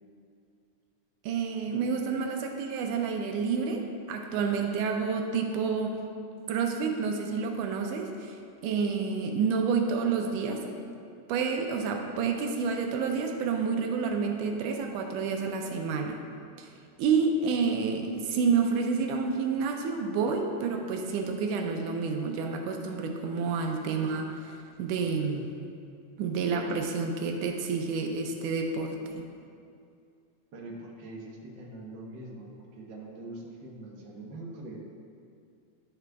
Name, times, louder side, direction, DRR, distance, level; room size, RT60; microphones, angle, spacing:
voice 1, 1.2-6.0 6.5-8.4 8.6-10.7 11.3-16.2 16.6-16.7 17.0-25.5 26.2-29.2, right 5 dB, 85° right, 3 dB, 2.1 m, -29 dB
voice 2, 30.5-34.8, right 2 dB, 60° right, -3 dB, 1.2 m, -43 dB
11.5 x 5.0 x 3.4 m, 2.5 s
omnidirectional pair, 3.7 m